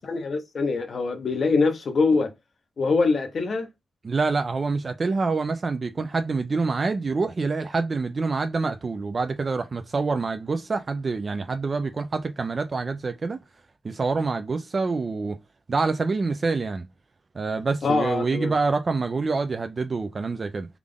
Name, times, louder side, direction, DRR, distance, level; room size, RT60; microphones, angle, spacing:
voice 1, 0.1-2.3 2.8-3.7 17.8-18.5, left 4 dB, 50° left, 0.7 m, -23 dB
voice 2, 4.0-13.4 13.8-15.4 15.7-16.8 17.3-20.7, right 4 dB, 40° right, 0.4 m, -26 dB
3.4 x 2.4 x 3.6 m
wide cardioid pair, 110°, 0 cm